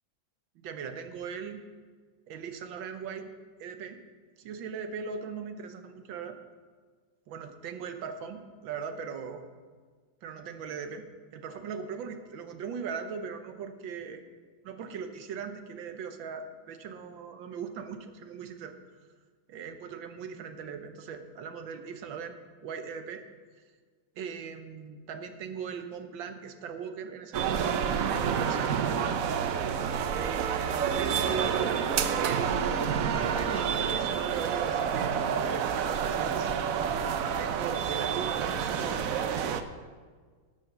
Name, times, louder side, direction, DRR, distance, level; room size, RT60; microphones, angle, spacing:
voice 1, 0.6-1.6 2.3-3.3 3.6-4.0 4.4-6.4 7.3-9.4 10.2-11.1 11.3-14.2 14.6-18.8 19.5-22.4 22.6-23.2 24.2-27.8 28.1-29.3 30.2-31.8 32.1-32.6 33.1-36.5 37.4-39.1, right 6 dB, 85° right, 7 dB, 1.7 m, -39 dB
sound 1, 27.3-39.6, right 7 dB, 65° right, 0.9 m, -29 dB
11.5 x 7.7 x 6.5 m, 1.6 s
omnidirectional pair, 2.0 m